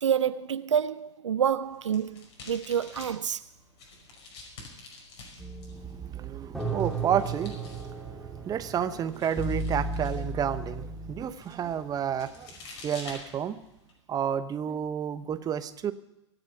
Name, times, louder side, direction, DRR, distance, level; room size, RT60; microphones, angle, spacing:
voice 1, 0.0-3.4, right 8 dB, 80° right, 0.5 m, -28 dB
sound 1, 1.6-13.9, left 3 dB, 60° left, 5.1 m, -50 dB
sound 2, 5.4-11.3, right 3 dB, ahead, 2.3 m, -35 dB
voice 2, 5.7-12.5 12.8-13.6 14.1-15.9, right 9 dB, 25° right, 1.0 m, -31 dB
24.0 x 8.1 x 5.9 m
hypercardioid pair, 100°, 15 cm